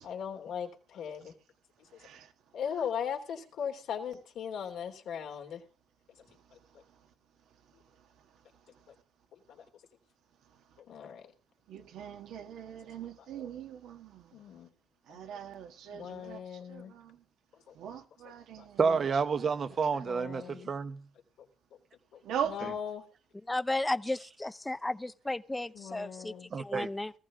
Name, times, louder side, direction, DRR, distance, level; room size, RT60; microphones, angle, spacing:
voice 1, 0.0-1.3 1.9-2.0 2.5-5.6 9.3-9.6 10.9-11.3 14.3-14.7 15.1-15.4 15.9-16.9 17.7-17.9 18.2-18.7 20.0-20.7 22.1-23.0 25.7-26.5, left 8 dB, 80° left, 3.0 m, -39 dB
voice 2, 11.7-14.2 15.1-16.4 16.7-17.2 17.8-19.1 19.9-20.1 22.2-22.6, right 9 dB, 85° right, 1.7 m, -40 dB
voice 3, 18.8-21.0 22.6-22.7 26.5-26.9, right 5 dB, 45° right, 1.0 m, -30 dB
voice 4, 23.5-27.1, left 2 dB, 15° left, 0.6 m, -34 dB
18.0 x 14.5 x 3.7 m
cardioid pair, 90°, 0 cm